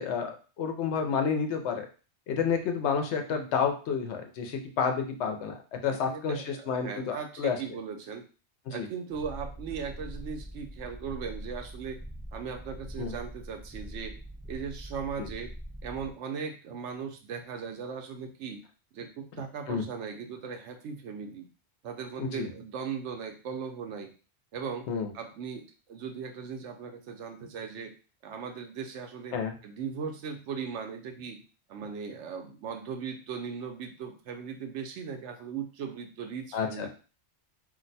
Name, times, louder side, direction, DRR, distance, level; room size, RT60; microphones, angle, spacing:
voice 1, 0.0-1.9 2.3-5.5 5.8-7.6 8.7-8.9 13.0-13.1 15.2-15.3 19.7-19.8 22.2-22.5 24.9-25.1 29.3-29.5 36.5-36.9, left 6 dB, 85° left, 5 dB, 0.9 m, -30 dB
voice 2, 5.9-8.2 8.7-12.0 12.3-14.1 14.5-15.5 15.8-18.6 18.9-21.5 21.8-24.1 24.5-24.9 25.1-27.9 28.2-29.4 29.6-31.4 31.7-36.9, right 6 dB, 85° right, 5 dB, 0.9 m, -38 dB
Purr, 9.1-16.1, equal, 5° right, 0.7 m, -43 dB
2.6 x 2.2 x 4.0 m, 0.35 s
omnidirectional pair, 1.2 m